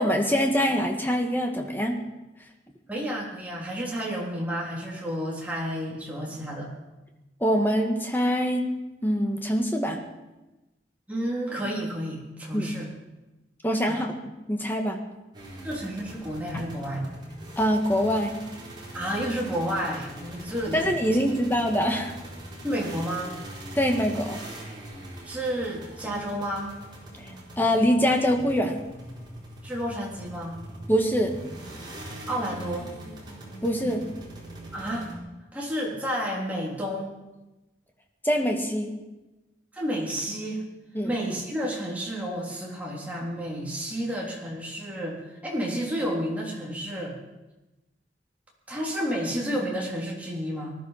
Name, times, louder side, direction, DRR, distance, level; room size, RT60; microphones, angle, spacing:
voice 1, 0.0-2.0 7.4-8.7 9.0-10.0 12.5-12.7 13.6-14.1 14.5-15.0 16.5-16.6 17.6-18.4 20.7-22.1 23.8-24.4 27.2-28.8 30.9-31.4 33.6-34.1 38.2-38.9 41.0-41.1, equal, 10° left, 2 dB, 1.8 m, -24 dB
voice 2, 2.9-6.7 11.1-12.9 13.9-14.1 15.6-17.0 18.9-20.9 22.6-23.4 25.2-26.8 29.6-30.6 32.3-32.9 34.7-35.1 35.5-37.2 39.7-40.6 41.0-47.1 48.7-50.8, equal, 10° right, -4 dB, 3.5 m, -31 dB
sound 1, 15.3-35.1, right 1 dB, 25° right, 4.1 m, -42 dB
19.5 x 12.0 x 5.9 m, 1.0 s
head